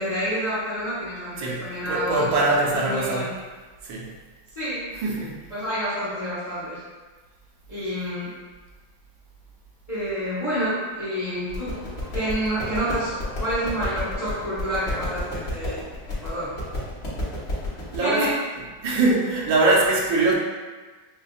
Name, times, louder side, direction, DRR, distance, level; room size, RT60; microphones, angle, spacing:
voice 1, 0.0-3.3 4.5-5.0 5.5-6.8 7.7-8.3 9.9-11.7 12.1-15.8 16.1-16.5 18.0-18.3, equal, 25° left, -11 dB, 0.9 m, -28 dB
voice 2, 1.4-3.3 3.8-4.1 5.0-5.4 17.9-18.3 18.8-20.3, right 2 dB, 75° right, -2 dB, 1.4 m, -22 dB
sound 1, 10.0-15.3, equal, 45° right, 0.7 m, -45 dB
sound 2, 11.5-18.0, left 1 dB, 40° left, 1.3 m, -32 dB
5.4 x 2.5 x 2.3 m, 1.3 s
omnidirectional pair, 2.1 m